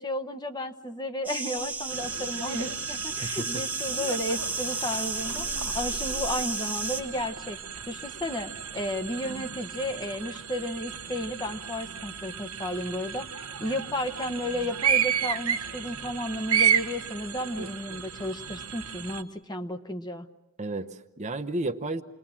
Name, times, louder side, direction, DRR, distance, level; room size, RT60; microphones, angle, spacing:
voice 1, 0.0-5.5 5.7-7.6 7.9-20.3, left 1 dB, 20° left, 7 dB, 1.0 m, -33 dB
sound 1, 1.2-7.0, right 3 dB, 5° right, 1.3 m, -33 dB
sound 2, 1.6-4.6 4.9-9.1, right 1 dB, 70° left, 7.1 m, -47 dB
sound 3, 1.9-19.2, right 8 dB, 70° right, 1.2 m, -33 dB
voice 2, 3.2-3.6 20.6-22.0, right 2 dB, 30° right, 7 dB, 0.9 m, -32 dB
29.0 x 21.0 x 7.4 m, 0.96 s
head